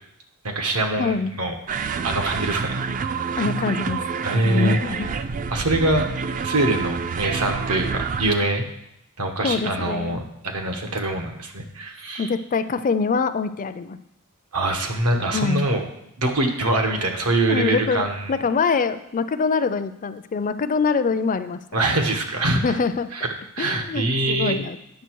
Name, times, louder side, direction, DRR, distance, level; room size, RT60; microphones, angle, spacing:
voice 1, 0.4-1.5 2.0-2.8 4.2-5.1 5.5-6.1 6.4-8.6 9.2-12.3 14.5-15.8 16.2-18.4 21.7-22.8 23.1-23.3 23.6-24.6, right 2 dB, 85° right, 4 dB, 1.3 m, -24 dB
voice 2, 1.0-1.3 3.4-4.0 4.4-5.1 9.4-10.2 12.2-14.0 15.3-15.7 17.5-21.6 22.6-23.1 23.6-24.8, left 5 dB, 35° left, 12 dB, 0.4 m, -24 dB
sound 1, 1.7-8.3, right 5 dB, 35° right, 0.3 m, -28 dB
9.4 x 6.4 x 4.6 m, 0.79 s
head